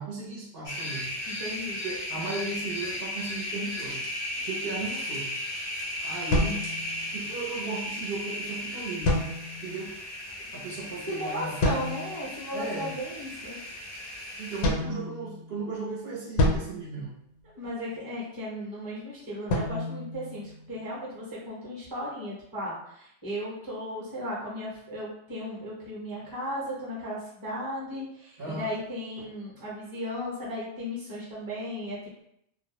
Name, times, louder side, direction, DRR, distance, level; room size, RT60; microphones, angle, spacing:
voice 1, 0.0-1.1 1.8-4.0 4.4-5.3 6.0-6.7 7.1-9.3 9.6-10.0 10.5-11.6 12.5-12.9 14.4-17.1 28.4-28.7 29.2-29.3, right 3 dB, 65° right, -5 dB, 0.9 m, -36 dB
sound 1, 0.6-14.6, left 1 dB, 30° left, 0.5 m, -36 dB
voice 2, 1.3-1.8 11.1-13.6 17.4-32.2, equal, 20° right, -6 dB, 0.8 m, -36 dB
sound 2, 6.3-7.4 9.0-9.9 11.6-12.3 14.6-15.7 16.4-17.8 19.5-21.0, left 1 dB, 90° left, 0.9 m, -29 dB
2.3 x 2.0 x 2.8 m, 0.73 s
omnidirectional pair, 1.2 m